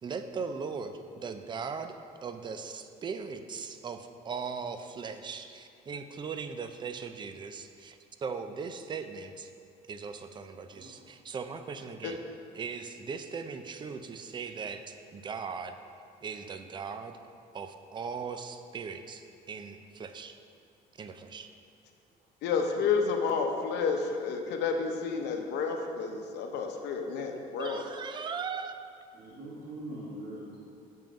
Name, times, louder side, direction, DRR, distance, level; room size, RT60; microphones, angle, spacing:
voice 1, 0.0-1.9 2.2-9.5 9.9-12.2 12.5-15.8 16.2-17.2 17.5-20.4 21.0-21.5 27.6-28.7, right 5 dB, 25° right, 8 dB, 0.4 m, -39 dB
voice 2, 22.4-27.8, left 5 dB, 80° left, 3 dB, 0.8 m, -30 dB
voice 3, 29.1-30.6, right 1 dB, 75° right, -9 dB, 1.7 m, -42 dB
7.5 x 3.7 x 5.1 m, 2.4 s
cardioid pair, 110°, 17 cm